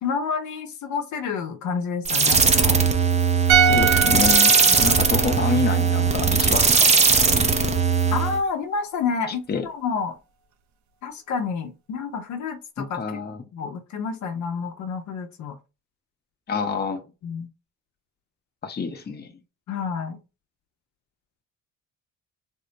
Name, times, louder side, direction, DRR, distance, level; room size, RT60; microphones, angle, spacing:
voice 1, 0.0-2.8 4.7-4.8 8.1-10.2 11.0-13.2 13.5-15.6 17.2-17.5 19.7-20.2, left 5 dB, 70° left, 0.7 m, -29 dB
sound 1, 2.0-8.4, right 5 dB, 25° right, 0.5 m, -19 dB
sound 2, 3.5-6.7 7.0-7.1, right 6 dB, 70° right, 0.6 m, -24 dB
voice 2, 3.7-7.4 9.5-9.7 12.8-13.4 16.5-17.0 18.6-19.3, left 5 dB, 35° left, 0.8 m, -28 dB
3.5 x 2.1 x 2.7 m
cardioid pair, 90°, 30 cm